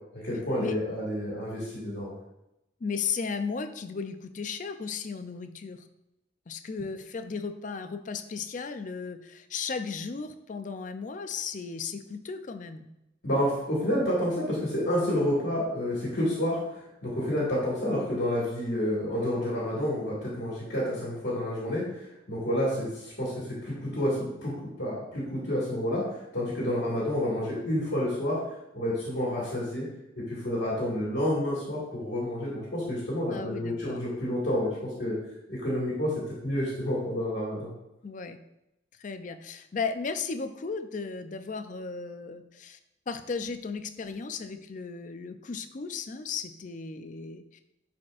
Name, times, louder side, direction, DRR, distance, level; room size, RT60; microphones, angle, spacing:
voice 1, 0.2-2.1 13.2-28.4 28.7-29.8 30.1-35.2 35.5-36.1 36.4-37.7, left 1 dB, 60° left, -6 dB, 1.8 m, -29 dB
voice 2, 2.8-5.9 6.5-12.9 33.3-34.0 38.0-38.4 39.0-42.8 43.1-47.6, left 5 dB, 40° left, 8 dB, 0.4 m, -35 dB
10.5 x 4.3 x 2.5 m, 0.88 s
head